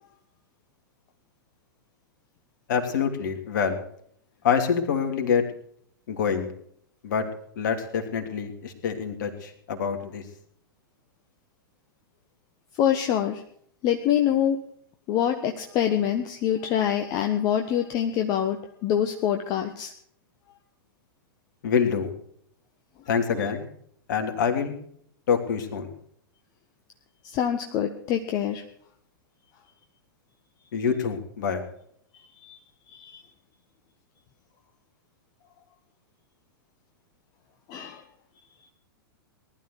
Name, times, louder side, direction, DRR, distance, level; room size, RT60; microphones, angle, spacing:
voice 1, 2.7-3.8 4.4-5.4 6.1-6.5 7.0-7.3 7.6-10.2 21.6-22.1 23.1-23.7 24.1-24.8 25.3-25.9 30.7-31.6, left 6 dB, 55° left, 5 dB, 3.1 m, -26 dB
voice 2, 12.7-13.4 13.8-14.6 15.1-19.9 27.2-28.6 32.4-32.6 32.9-33.2 37.7-38.0, left 10 dB, 35° left, 5 dB, 1.3 m, -25 dB
19.5 x 12.5 x 4.7 m, 0.65 s
figure-of-eight pair, 100°, 12 cm